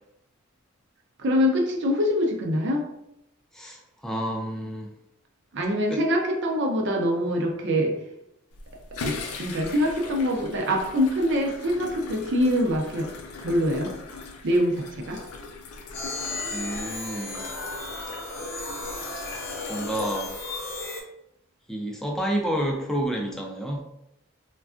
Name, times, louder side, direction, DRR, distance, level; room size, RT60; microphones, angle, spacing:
voice 1, 1.2-2.9 5.5-7.9 8.9-13.1 13.4-13.9 14.4-15.2, equal, 55° right, 2 dB, 0.6 m, -24 dB
voice 2, 3.5-4.9 5.9-6.0 16.5-17.5 19.7-20.4 21.7-23.8, right 1 dB, ahead, 0 dB, 0.4 m, -29 dB
sound 1, 8.5-20.9, left 4 dB, 85° left, 0.4 m, -40 dB
sound 2, 15.9-21.0, left 2 dB, 50° left, 0.7 m, -35 dB
3.3 x 2.3 x 2.4 m, 0.81 s
head